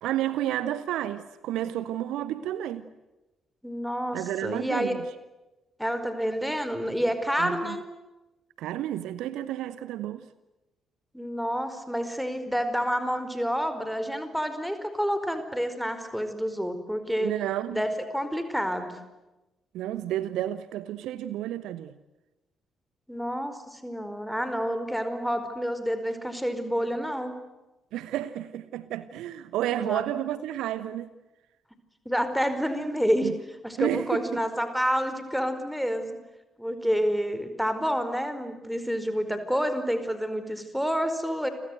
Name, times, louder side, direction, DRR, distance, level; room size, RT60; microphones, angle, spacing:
voice 1, 0.0-2.9 4.1-5.1 7.4-7.8 8.6-10.3 17.2-17.8 19.7-22.0 27.9-31.1 33.2-33.3 33.8-34.5, right 12 dB, 60° right, 1.0 m, -31 dB
voice 2, 3.6-5.0 5.8-7.8 11.1-17.3 17.7-19.0 23.1-27.3 29.8-30.0 32.0-33.3 33.6-36.2 36.6-41.5, equal, ahead, 4.9 m, -28 dB
30.0 x 24.5 x 8.0 m
figure-of-eight pair, 40°, 0 cm